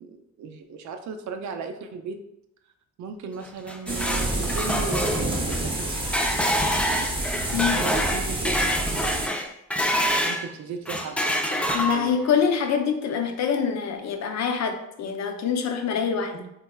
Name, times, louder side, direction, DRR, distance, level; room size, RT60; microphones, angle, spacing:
voice 1, 0.0-2.2 3.0-5.1 5.5-6.0 7.7-9.3 10.2-12.1, right 5 dB, 70° right, 6 dB, 0.5 m, -36 dB
sound 1, 3.4-10.5 10.9-12.3, equal, 5° left, 0.3 m, -26 dB
sound 2, 3.9-9.3, right 2 dB, 15° right, 0.7 m, -28 dB
voice 2, 11.7-16.5, left 7 dB, 60° left, 5 dB, 0.6 m, -25 dB
3.6 x 3.3 x 2.2 m, 0.82 s
cardioid pair, 90°, 30 cm